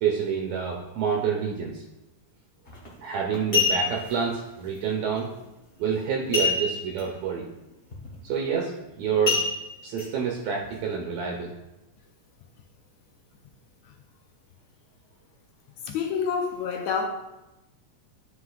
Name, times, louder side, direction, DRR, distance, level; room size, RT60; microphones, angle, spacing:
voice 1, 0.0-1.8 3.0-5.3 5.8-7.5 8.2-8.7 9.0-9.4 9.8-11.5, right 7 dB, 75° right, -1 dB, 2.0 m, -27 dB
sound 1, 2.7-2.9 3.3-4.1 6.3-7.0 7.3-7.4 7.9-8.2 9.3-10.0 10.6-10.7, left 5 dB, 50° left, 0.6 m, -25 dB
voice 2, 15.9-17.1, left 6 dB, 75° left, 3 dB, 1.9 m, -27 dB
9.8 x 5.7 x 2.4 m, 0.97 s
omnidirectional pair, 3.4 m